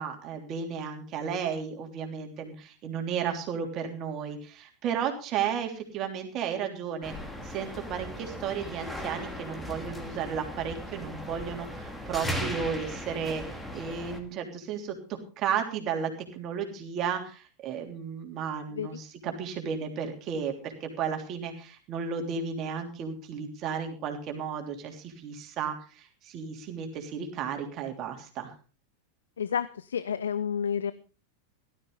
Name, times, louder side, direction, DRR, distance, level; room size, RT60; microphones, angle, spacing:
voice 1, 0.0-7.1 7.4-28.5, right 7 dB, 35° right, 4 dB, 3.2 m, -34 dB
sound 1, 7.0-14.2, equal, 5° left, 2.6 m, -37 dB
voice 2, 29.4-30.9, left 7 dB, 65° left, 16 dB, 0.6 m, -30 dB
17.5 x 13.0 x 3.9 m, 0.35 s
figure-of-eight pair, 90°, 0 cm